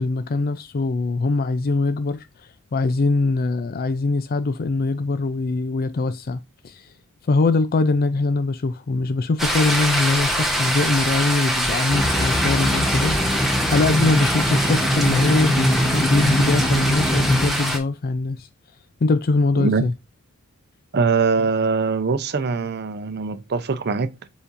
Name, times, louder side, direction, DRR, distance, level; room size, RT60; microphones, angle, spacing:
voice 1, 0.0-2.3 2.7-6.9 7.3-18.5 19.0-19.9, left 3 dB, 45° left, 0.5 m, -22 dB
sound 1, 9.4-17.8, equal, ahead, 1.4 m, -24 dB
sound 2, 11.9-17.5, equal, 15° left, 1.1 m, -23 dB
voice 2, 19.6-19.9 20.9-24.3, right 4 dB, 50° right, 0.6 m, -22 dB
7.1 x 5.1 x 2.6 m
head